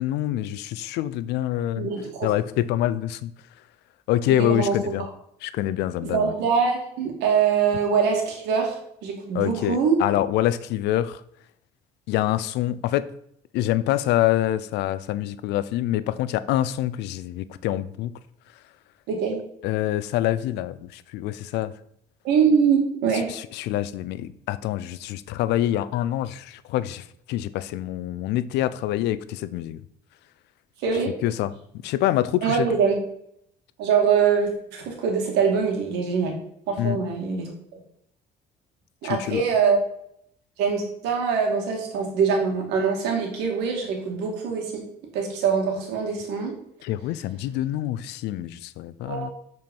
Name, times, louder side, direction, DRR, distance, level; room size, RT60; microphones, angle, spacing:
voice 1, 0.0-1.9 2.2-3.3 4.1-5.1 5.4-6.3 9.3-11.2 12.1-13.1 13.5-18.1 19.6-21.7 23.3-29.8 31.2-31.5 31.8-32.7 36.8-37.0 39.0-39.4 46.8-49.3, left 13 dB, 85° left, 15 dB, 0.5 m, -26 dB
voice 2, 1.8-2.3 4.3-4.7 6.0-8.8 9.0-10.0 19.1-19.4 22.2-23.3 30.8-31.1 32.4-32.9 33.8-36.3 36.7-37.5 39.0-39.8 40.6-44.8 45.1-46.6 49.0-49.3, right 6 dB, 90° right, 1 dB, 2.2 m, -23 dB
7.6 x 4.6 x 5.4 m, 0.72 s
cardioid pair, 110°, 17 cm